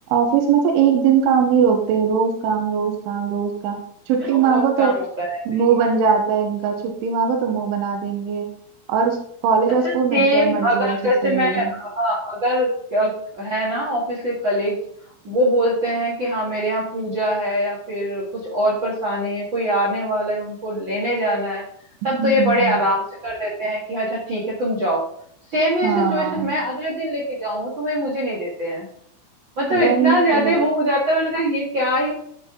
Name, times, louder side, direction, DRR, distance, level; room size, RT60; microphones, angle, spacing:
voice 1, 0.1-3.8 4.1-4.9 5.5-8.5 8.9-9.2 9.4-11.7 22.1-22.8 25.8-26.5 29.7-30.6, right 6 dB, 85° right, 2 dB, 3.6 m, -20 dB
voice 2, 4.3-5.4 9.8-14.8 15.2-21.6 22.0-25.0 25.5-28.9 29.6-32.1, equal, 60° right, -6 dB, 1.2 m, -22 dB
14.5 x 4.8 x 3.9 m, 0.66 s
omnidirectional pair, 5.4 m